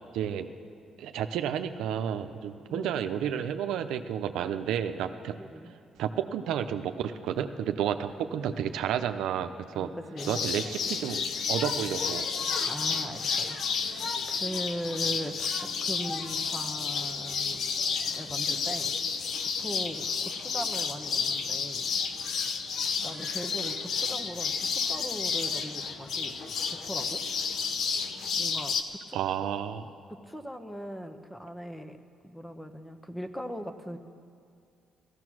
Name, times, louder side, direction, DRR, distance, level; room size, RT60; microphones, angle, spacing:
voice 1, 0.1-0.5 1.0-5.4 6.0-9.9 10.3-11.2 11.5-12.3 29.1-29.9, right 9 dB, 85° right, 8 dB, 0.6 m, -31 dB
voice 2, 2.7-3.0 5.4-5.7 9.7-10.4 12.6-17.6 18.1-18.9 19.6-21.9 22.9-26.3 26.7-27.2 28.4-29.2 30.1-32.0 32.2-34.0, equal, 10° left, 8 dB, 1.0 m, -39 dB
sound 1, 10.2-28.8, left 5 dB, 65° left, 0.9 m, -31 dB
15.5 x 14.5 x 6.2 m, 2.4 s
cardioid pair, 90°, 0 cm